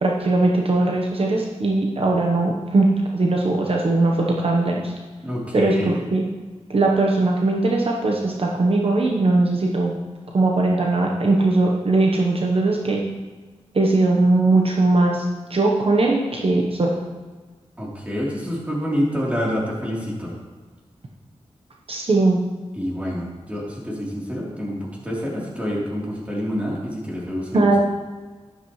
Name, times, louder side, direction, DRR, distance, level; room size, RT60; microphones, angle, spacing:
voice 1, 0.0-4.9 5.5-6.2 6.7-10.0 10.3-13.0 13.7-17.0 21.9-22.4 27.5-27.8, right 2 dB, 55° right, -1 dB, 1.0 m, -20 dB
voice 2, 5.2-6.0 17.8-20.3 22.7-27.8, equal, 10° right, -5 dB, 3.4 m, -27 dB
12.5 x 11.0 x 3.2 m, 1.4 s
wide cardioid pair, 110°, 12 cm